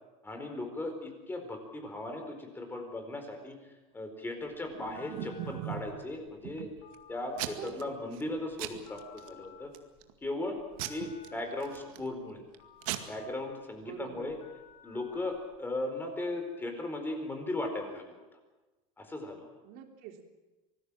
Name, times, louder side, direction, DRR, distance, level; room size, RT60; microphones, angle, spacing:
voice 1, 0.2-3.6 3.9-6.7 7.1-9.7 10.2-10.6 10.9-12.4 13.1-14.4 14.8-18.2 19.0-19.5, left 2 dB, 10° left, 5 dB, 4.4 m, -37 dB
Telephone, 4.4-15.8, left 7 dB, 60° left, 4.7 m, -57 dB
Packing tape duct tape / Tearing, 4.6-6.0 6.4-6.9 7.4-7.8 8.1-8.3 8.6-9.3 9.7-10.1 10.8-12.1 12.5-12.6 12.8-13.0, right 13 dB, 75° right, 2.1 m, -39 dB
voice 2, 7.5-8.0 13.8-14.3 19.6-20.3, right 9 dB, 55° right, 3 dB, 3.7 m, -45 dB
25.5 x 19.5 x 7.5 m, 1.2 s
supercardioid pair, 145°, 17 cm